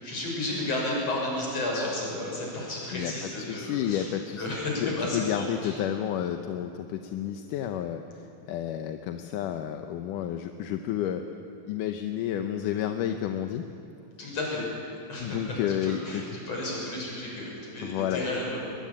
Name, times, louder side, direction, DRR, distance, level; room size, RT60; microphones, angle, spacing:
voice 1, 0.0-4.1 4.4-5.8 14.2-14.7 15.1-15.4 15.8-18.7, left 1 dB, 45° left, -3 dB, 7.5 m, -32 dB
voice 2, 3.4-4.5 4.8-11.2 11.7-13.6 15.2-16.2 17.8-18.3, left 10 dB, 75° left, 6 dB, 2.2 m, -31 dB
22.0 x 22.0 x 8.8 m, 2.9 s
omnidirectional pair, 4.1 m